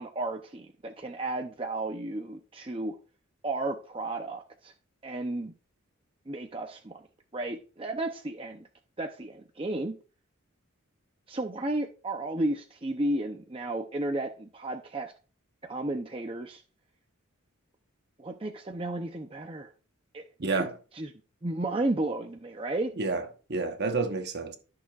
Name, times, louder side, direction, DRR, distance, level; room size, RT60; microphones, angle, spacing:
voice 1, 0.0-2.9 3.4-4.7 5.0-5.5 6.3-7.0 7.3-8.7 9.0-10.0 11.3-15.1 15.6-16.6 18.2-19.7 20.1-20.7 20.9-21.1 21.4-22.9, right 2 dB, 25° right, 0.6 m, -33 dB
voice 2, 20.4-20.7 23.0-24.6, right 3 dB, 50° right, 1.1 m, -30 dB
13.5 x 6.7 x 2.4 m
head